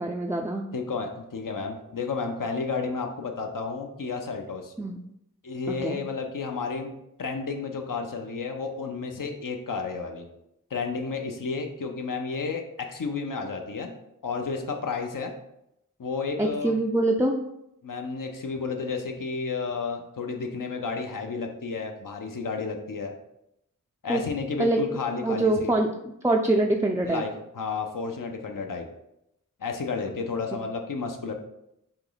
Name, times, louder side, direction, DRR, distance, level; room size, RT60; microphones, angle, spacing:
voice 1, 0.0-0.6 4.8-5.0 5.7-6.0 16.4-17.4 24.1-24.2 24.6-24.8 25.2-25.9 26.2-27.2 30.1-30.2, right 2 dB, 10° right, 1 dB, 0.3 m, -24 dB
voice 2, 0.7-4.7 5.4-6.9 7.2-10.3 10.7-13.9 14.2-15.3 16.0-16.8 17.8-23.1 24.0-25.7 27.0-27.3 27.5-28.9 29.6-31.3, left 4 dB, 70° left, 3 dB, 0.7 m, -31 dB
4.4 x 3.0 x 3.9 m, 0.82 s
wide cardioid pair, 70°, 33 cm